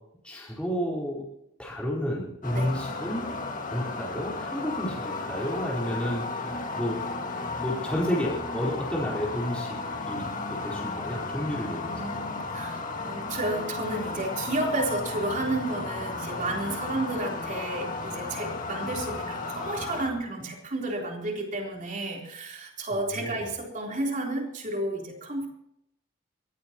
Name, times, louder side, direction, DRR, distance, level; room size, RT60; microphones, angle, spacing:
voice 1, 0.2-1.3 1.6-3.3 3.7-7.0 7.6-9.8 10.1-12.2 22.9-23.4, equal, 5° left, -5 dB, 4.3 m, -31 dB
sound 1, 2.4-20.1, left 3 dB, 40° left, 2.0 m, -34 dB
voice 2, 11.9-25.5, right 2 dB, 40° right, 0 dB, 3.9 m, -32 dB
23.0 x 16.5 x 3.0 m, 0.76 s
head